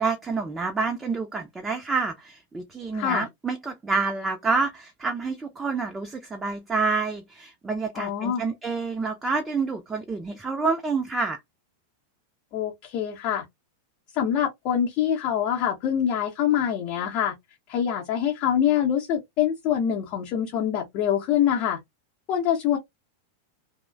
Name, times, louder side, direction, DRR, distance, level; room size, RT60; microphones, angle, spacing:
voice 1, 0.0-11.4, right 4 dB, 15° right, 0.5 m, -28 dB
voice 2, 2.9-3.3 7.9-8.4 12.5-13.4 14.1-17.3 17.7-21.8 22.3-22.8, left 9 dB, 40° left, 0.7 m, -25 dB
2.9 x 2.1 x 2.4 m
figure-of-eight pair, 90°, 0 cm